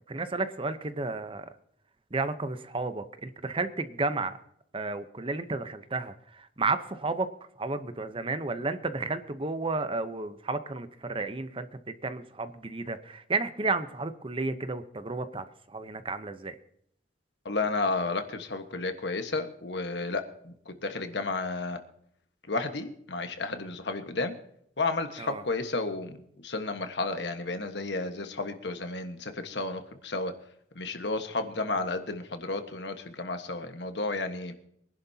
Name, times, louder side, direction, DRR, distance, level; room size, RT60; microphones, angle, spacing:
voice 1, 0.1-1.5 2.1-4.4 4.7-7.3 7.6-16.5 25.2-25.4, right 3 dB, 30° right, 11 dB, 0.8 m, -32 dB
voice 2, 17.4-21.8 22.5-24.3 24.8-30.3 30.7-34.5, left 3 dB, 65° left, 7 dB, 1.4 m, -32 dB
23.5 x 11.0 x 2.8 m, 0.69 s
head